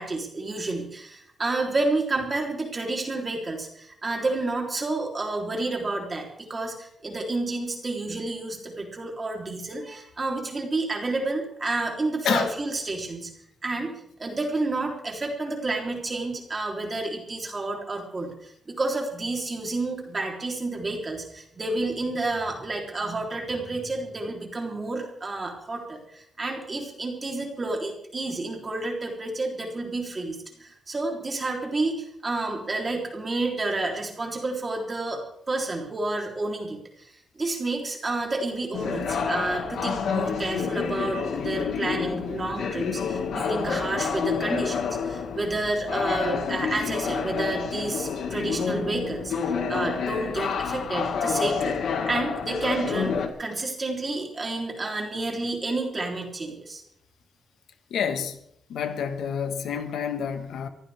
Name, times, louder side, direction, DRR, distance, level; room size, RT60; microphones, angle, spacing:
voice 1, 0.0-13.3 13.6-13.9 14.2-51.8 52.1-56.8, right 2 dB, 25° right, 3.6 m, -30 dB
sound 1, 38.7-53.3, left 6 dB, 75° left, 2.0 m, -29 dB
voice 2, 57.9-58.4 58.7-60.7, left 7 dB, 90° left, 1.6 m, -28 dB
23.5 x 15.5 x 3.6 m
wide cardioid pair, 160°, 0 cm